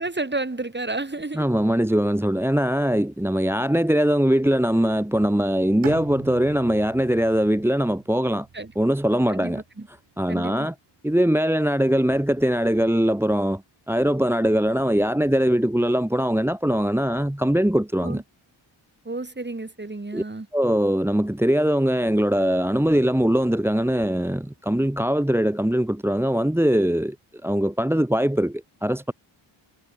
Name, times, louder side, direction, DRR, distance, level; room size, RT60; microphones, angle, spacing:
voice 1, 0.0-1.5 8.5-8.7 9.3-9.9 10.3-10.7 18.0-18.2 19.1-20.5, right 2 dB, 20° right, 3.7 m, -31 dB
voice 2, 1.3-8.5 8.7-9.6 10.2-10.7 11.0-13.6 13.9-18.2 20.1-20.2 20.5-27.1 27.4-29.1, equal, 5° right, 1.5 m, -21 dB
Bowed string instrument, 5.8-9.8, right 7 dB, 70° right, 4.4 m, -42 dB
cardioid pair, 60°, 50 cm